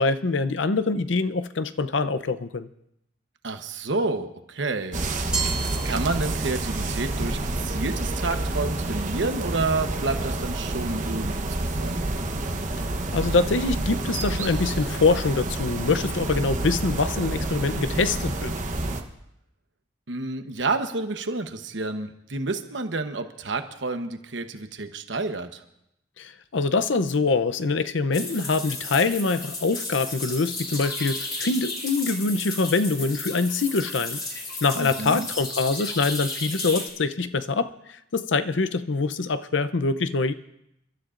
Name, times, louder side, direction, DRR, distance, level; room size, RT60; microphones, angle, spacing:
voice 1, 0.0-2.7 13.1-18.5 26.2-34.2 34.6-40.3, left 3 dB, 75° left, 13 dB, 0.7 m, -24 dB
voice 2, 3.4-5.0 5.8-12.0 20.1-25.6 34.7-35.3, right 3 dB, 70° right, 7 dB, 1.0 m, -29 dB
sound 1, 4.9-19.0, right 2 dB, 45° right, 1.0 m, -28 dB
Glass, 5.3-6.8, right 4 dB, 5° right, 1.5 m, -32 dB
sound 2, 28.1-36.9, left 2 dB, 25° left, 2.9 m, -33 dB
29.0 x 12.5 x 2.5 m, 0.81 s
head